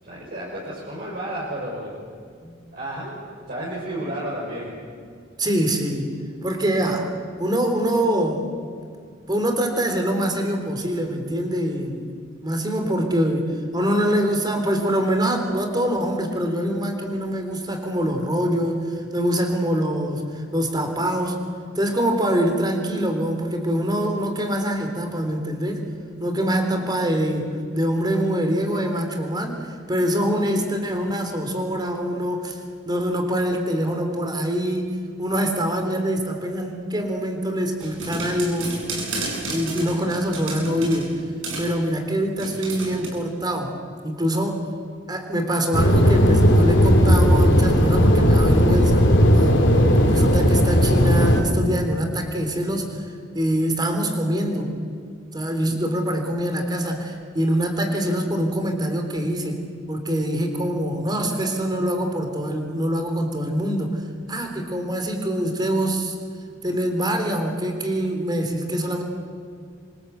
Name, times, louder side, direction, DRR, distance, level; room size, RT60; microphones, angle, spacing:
voice 1, 0.0-2.0 2.7-3.2 3.5-4.8, right 1 dB, 50° right, -6 dB, 6.0 m, -31 dB
voice 2, 5.4-6.1 6.4-8.5 9.3-12.1 12.4-21.4 21.8-25.8 26.2-32.6 32.9-34.9 35.2-38.7 39.5-41.1 41.6-43.7 44.0-44.6 45.1-49.0 49.4-49.5 50.1-53.1 53.3-54.7 55.3-59.6 59.9-64.0 64.3-66.1 66.6-69.0, equal, 20° right, 5 dB, 3.6 m, -24 dB
sound 1, 37.8-41.1 41.4-41.7 42.4-43.1, right 2 dB, 85° right, 7.5 m, -31 dB
sound 2, 45.7-51.4, equal, 65° left, 3.8 m, -16 dB
27.5 x 25.0 x 8.1 m, 2.2 s
head